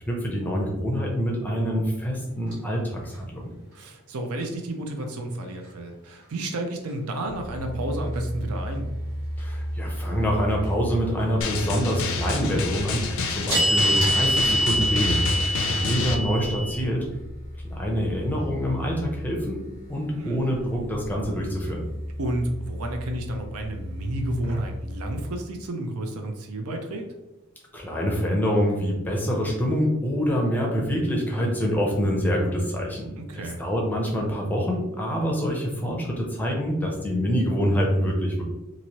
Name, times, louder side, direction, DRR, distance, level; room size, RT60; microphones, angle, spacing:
voice 1, 0.1-3.5 9.4-17.0 17.6-19.6 19.9-21.8 27.7-38.4, equal, 10° left, -1 dB, 0.5 m, -26 dB
sound 1, 2.5-2.6 12.9-16.8, right 1 dB, 55° right, 1.0 m, -24 dB
voice 2, 3.7-8.9 20.2-20.4 22.2-27.1 33.2-33.6, right 1 dB, 80° right, 4 dB, 0.5 m, -31 dB
sound 2, 7.3-25.3, equal, 30° right, 1.0 m, -36 dB
Drum, 11.4-16.2, left 3 dB, 60° left, 0.4 m, -28 dB
3.1 x 2.6 x 2.8 m, 0.98 s
head